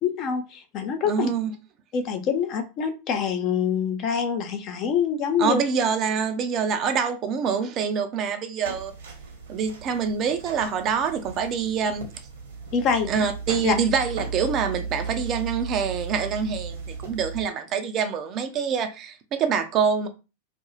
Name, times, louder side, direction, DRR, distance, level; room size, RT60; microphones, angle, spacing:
voice 1, 0.0-1.3 1.9-5.6 12.7-13.1 13.6-13.7, left 6 dB, 35° left, 0.5 m, -25 dB
voice 2, 1.1-1.5 5.4-8.9 9.5-12.1 13.1-20.1, right 6 dB, 35° right, 0.4 m, -25 dB
sound 1, 8.6-17.5, right 4 dB, 60° right, 0.9 m, -36 dB
2.5 x 2.2 x 2.9 m
figure-of-eight pair, 90°, 0 cm